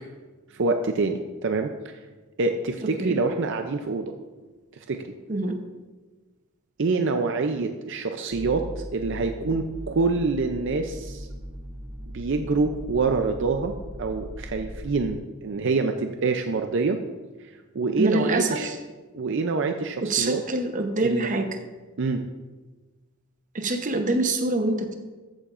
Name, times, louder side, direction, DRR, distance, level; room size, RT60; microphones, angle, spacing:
voice 1, 0.5-1.9 2.4-4.1 4.7-5.1 6.8-11.3 12.1-17.0 17.4-18.7 19.1-20.4 21.0-21.4 22.0-22.2, right 3 dB, 60° right, 5 dB, 0.5 m, -26 dB
sound 1, 8.3-15.2, equal, 80° right, 1.5 m, -39 dB
voice 2, 18.0-18.7 20.0-21.6 23.5-25.0, right 2 dB, 40° right, 5 dB, 0.9 m, -25 dB
14.0 x 8.9 x 2.5 m, 1.3 s
head